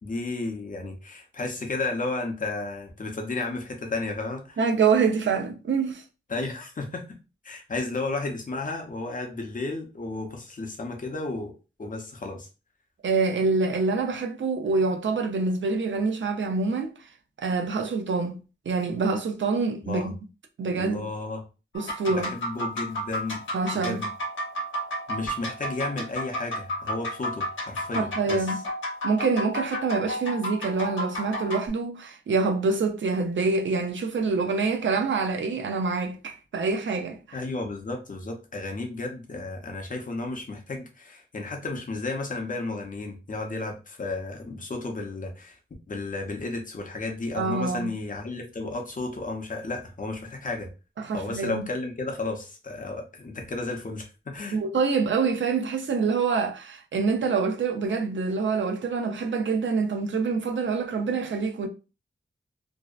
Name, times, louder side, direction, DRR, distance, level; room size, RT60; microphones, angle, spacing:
voice 1, 0.0-4.6 6.3-7.2 7.4-11.5 11.8-12.5 19.8-20.1 20.8-21.4 22.1-23.4 23.7-24.1 25.1-28.5 37.3-45.6 45.9-50.7 51.1-54.6, left 3 dB, 40° left, 0.6 m, -33 dB
voice 2, 4.6-6.0 13.0-16.9 17.4-18.4 18.7-20.1 20.6-21.1 21.7-22.3 23.5-24.0 27.9-28.6 29.0-37.4 47.4-47.9 51.0-51.6 54.5-61.7, right 4 dB, 65° right, 0.5 m, -26 dB
sound 1, 21.7-31.7, equal, 70° left, 0.8 m, -32 dB
2.6 x 2.0 x 2.3 m
wide cardioid pair, 105°, 21 cm